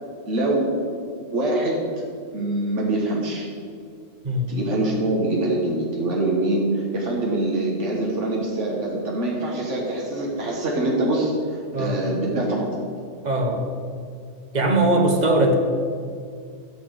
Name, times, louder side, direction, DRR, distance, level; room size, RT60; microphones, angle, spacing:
voice 1, 0.3-0.8 1.3-1.9 2.3-3.5 4.5-11.3 11.7-12.7, right 2 dB, 90° right, -2 dB, 1.7 m, -24 dB
voice 2, 13.2-13.7 14.5-15.6, right 1 dB, 40° right, 3 dB, 1.2 m, -20 dB
12.5 x 4.4 x 8.0 m, 2.2 s
omnidirectional pair, 1.2 m